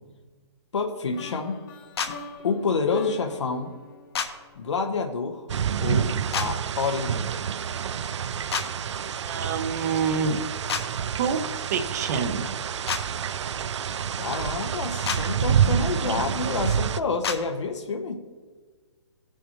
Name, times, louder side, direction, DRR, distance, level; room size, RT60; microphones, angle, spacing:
voice 1, 0.7-1.6 2.4-3.7 4.6-5.5 5.8-7.3 14.2-18.1, left 4 dB, 85° left, 3 dB, 1.1 m, -28 dB
sound 1, 1.1-5.1, left 4 dB, 45° left, 1.3 m, -43 dB
sound 2, 2.0-2.1 4.1-4.3 6.3-6.5 8.5-8.7 10.7-10.8 12.9-13.0 15.1-15.2 17.2-17.4, left 6 dB, 65° left, 1.2 m, -27 dB
sound 3, 5.5-17.0, right 8 dB, 85° right, 0.4 m, -28 dB
voice 2, 9.2-10.4 11.2-12.5, right 5 dB, 35° right, 8 dB, 0.6 m, -27 dB
16.0 x 7.0 x 3.0 m, 1.5 s
hypercardioid pair, 160°, 15 cm